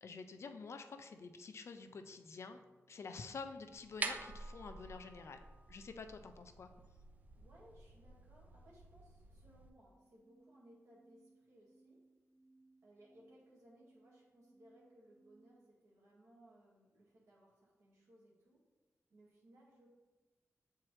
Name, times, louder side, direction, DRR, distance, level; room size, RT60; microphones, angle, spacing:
voice 1, 0.0-2.6 2.9-5.4 5.7-6.7, left 4 dB, 60° left, 8 dB, 0.4 m, -49 dB
sound 1, 1.8-7.8 9.8-15.8, right 2 dB, 20° left, 0.7 m, -71 dB
sound 2, 3.7-9.7, right 3 dB, 30° right, 0.4 m, -48 dB
voice 2, 7.3-12.0 12.8-18.6 19.1-20.1, right 1 dB, 70° right, -5 dB, 2.0 m, -64 dB
7.3 x 4.5 x 3.2 m, 1.2 s
wide cardioid pair, 175°, 5 cm